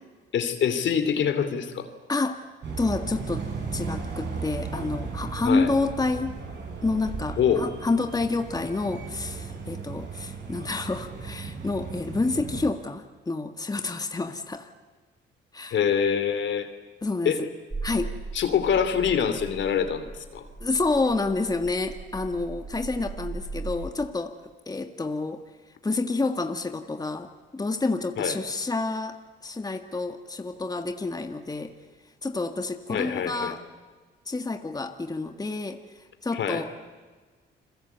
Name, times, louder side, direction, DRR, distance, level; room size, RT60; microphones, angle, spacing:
voice 1, 0.3-1.9 5.4-5.7 7.4-7.6 15.7-16.7 17.2-17.4 18.3-20.4 28.2-28.3 32.9-33.5 36.3-36.6, left 7 dB, 70° left, 10 dB, 3.0 m, -25 dB
voice 2, 2.1-2.4 2.8-3.5 3.7-6.4 6.8-14.7 15.5-15.8 17.0-17.5 17.8-18.1 20.6-24.4 24.7-25.4 25.8-31.7 32.2-33.6 34.3-35.8 36.2-36.8, left 3 dB, 20° left, 7 dB, 1.8 m, -29 dB
sound 1, 2.6-12.7, right 5 dB, 60° right, 7.7 m, -36 dB
sound 2, 17.7-23.9, right 3 dB, 15° right, 3.9 m, -38 dB
30.0 x 22.5 x 8.2 m, 1.4 s
cardioid pair, 90°, 20 cm